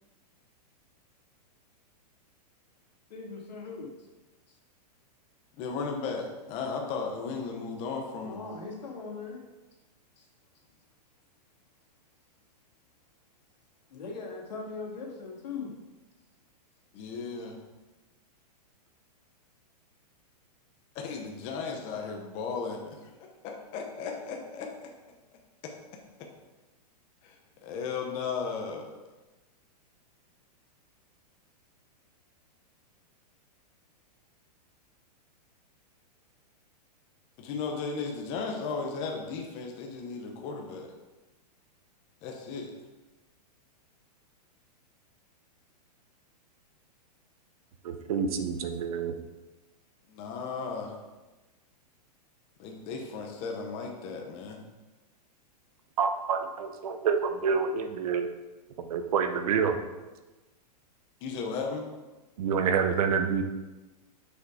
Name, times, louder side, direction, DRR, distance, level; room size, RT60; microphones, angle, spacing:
voice 1, 3.1-3.9 8.2-9.4 10.2-10.3 13.9-15.7, left 4 dB, 80° left, -2 dB, 2.5 m, -39 dB
voice 2, 5.6-8.4 16.9-17.6 20.9-23.0 23.4-24.7 27.2-27.3 27.6-28.9 37.4-40.9 42.2-42.7 50.1-51.0 52.6-54.6 61.2-61.9, left 5 dB, 25° left, 2 dB, 0.9 m, -35 dB
voice 3, 47.8-49.1 56.0-58.3 58.8-59.8 62.4-63.4, right 6 dB, 60° right, 7 dB, 0.9 m, -27 dB
6.6 x 5.6 x 4.8 m, 1.1 s
supercardioid pair, 165°, 21 cm